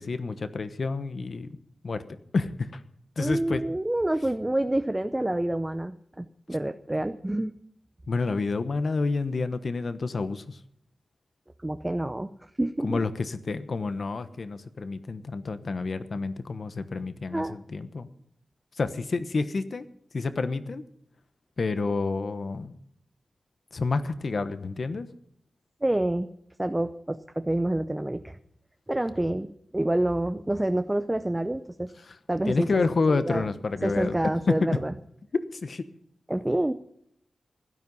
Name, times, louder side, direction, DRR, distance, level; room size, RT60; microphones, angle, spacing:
voice 1, 0.0-1.6 1.8-2.0 2.3-2.8 3.2-3.6 8.1-10.6 12.8-18.1 18.8-19.9 20.1-20.8 21.6-22.8 23.7-25.1 32.1-32.2 32.5-34.2 34.5-34.6 35.5-35.9, left 3 dB, 50° left, 12 dB, 1.1 m, -29 dB
voice 2, 3.2-7.5 11.6-12.3 12.6-13.0 17.3-17.6 25.8-26.3 26.6-28.4 28.9-29.5 29.7-31.9 32.3-33.4 33.8-34.9 36.3-36.7, right 1 dB, 10° right, 9 dB, 0.6 m, -28 dB
16.0 x 12.5 x 5.4 m, 0.71 s
wide cardioid pair, 160°, 0 cm